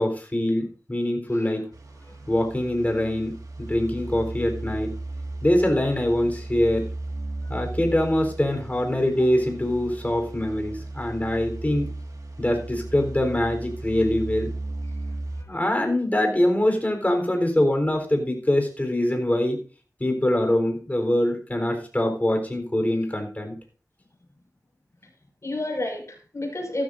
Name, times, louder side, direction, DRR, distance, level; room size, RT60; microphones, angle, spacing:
voice 1, 0.0-1.6 2.3-4.9 5.4-6.9 7.5-11.9 12.4-14.5 15.5-19.6 20.0-23.6, left 1 dB, 25° left, 4 dB, 3.9 m, -24 dB
sound 1, 1.7-15.4, right 2 dB, 65° right, 1.9 m, -36 dB
voice 2, 15.4-15.9 25.4-26.8, left 1 dB, 50° left, 1 dB, 5.8 m, -31 dB
15.5 x 13.0 x 2.6 m, 0.38 s
wide cardioid pair, 70°, 6 cm